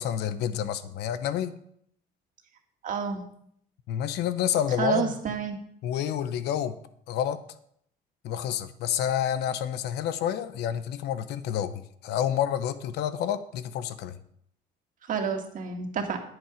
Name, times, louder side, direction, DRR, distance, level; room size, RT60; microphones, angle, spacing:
voice 1, 0.0-1.5 3.9-5.1 5.8-6.8 7.1-7.4 8.2-14.2, left 10 dB, 80° left, 12 dB, 0.9 m, -29 dB
voice 2, 2.8-3.2 4.8-5.6 15.1-16.2, right 6 dB, 50° right, 3 dB, 2.0 m, -29 dB
10.5 x 9.0 x 5.1 m, 0.68 s
cardioid pair, 110°, 17 cm